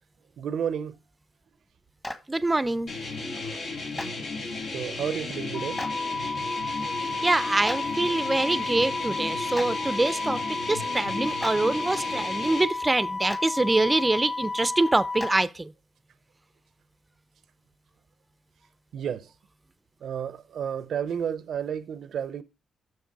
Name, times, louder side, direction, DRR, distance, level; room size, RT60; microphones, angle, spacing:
voice 1, 0.4-1.0 3.3-3.7 4.7-6.5 18.9-19.3 20.0-22.4, right 8 dB, 75° right, 0.6 m, -32 dB
Clapping, 2.0-2.1 3.9-4.1 5.8-5.9 7.6-7.8 9.5-9.6 11.4-11.5 13.3-13.4 15.2-15.3, left 1 dB, 15° left, 1.3 m, -33 dB
voice 2, 2.3-3.0 7.0-15.7, right 2 dB, 20° right, 0.6 m, -25 dB
sound 1, 2.9-12.6, left 3 dB, 75° left, 3.1 m, -34 dB
Wind instrument woodwind instrument, 5.5-15.4, left 3 dB, 35° left, 0.9 m, -32 dB
6.7 x 6.5 x 4.7 m
cardioid pair, 80°, 0 cm